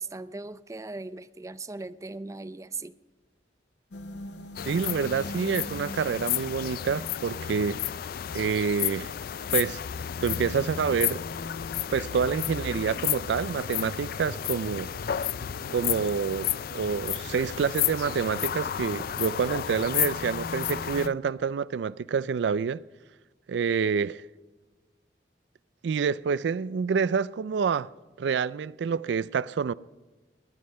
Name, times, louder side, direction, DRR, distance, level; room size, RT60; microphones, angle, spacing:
voice 1, 0.0-2.9, right 3 dB, 20° right, 0.4 m, -38 dB
sound 1, 3.9-21.1, left 2 dB, 75° left, 0.9 m, -44 dB
sound 2, 4.6-21.1, left 11 dB, 55° left, 0.3 m, -32 dB
voice 2, 4.6-7.8 8.3-9.1 9.5-9.8 10.2-11.2 11.9-14.9 15.7-22.8 23.5-24.2 25.8-27.9 28.2-29.7, right 6 dB, 85° right, 0.4 m, -27 dB
20.5 x 9.7 x 5.4 m
head